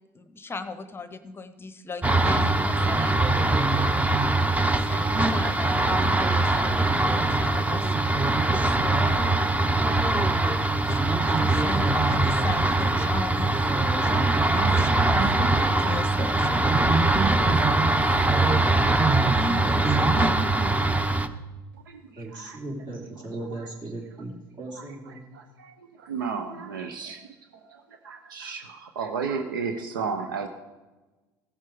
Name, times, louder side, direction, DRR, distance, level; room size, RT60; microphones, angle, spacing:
voice 1, 0.1-3.2 4.7-9.3 10.9-16.6 19.3-19.8 20.2-20.3, left 3 dB, 20° left, 12 dB, 0.8 m, -37 dB
sound 1, 2.0-21.3, right 2 dB, 15° right, 0.8 m, -22 dB
voice 2, 19.6-20.3 22.2-25.2, right 2 dB, 50° right, -1 dB, 3.6 m, -37 dB
voice 3, 21.9-22.6 25.3-25.7 26.0-27.2 27.7-30.5, right 5 dB, 85° right, 6 dB, 0.8 m, -33 dB
15.5 x 7.5 x 4.9 m, 1.2 s
hypercardioid pair, 70°, 11 cm